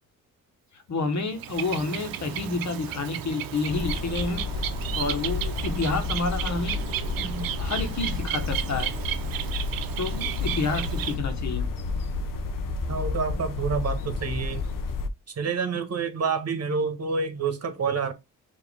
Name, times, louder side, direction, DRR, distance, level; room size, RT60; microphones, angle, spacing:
voice 1, 0.9-4.4 5.0-6.8 7.2-8.9 10.0-11.7, left 3 dB, 55° left, 1.4 m, -29 dB
Bird, 1.1-11.2, right 11 dB, 85° right, 0.6 m, -34 dB
sound 1, 3.7-15.1, left 3 dB, 70° left, 0.8 m, -31 dB
voice 2, 12.9-14.6 15.4-18.1, right 5 dB, 50° right, 1.3 m, -28 dB
4.9 x 2.9 x 3.4 m
cardioid pair, 70°, 34 cm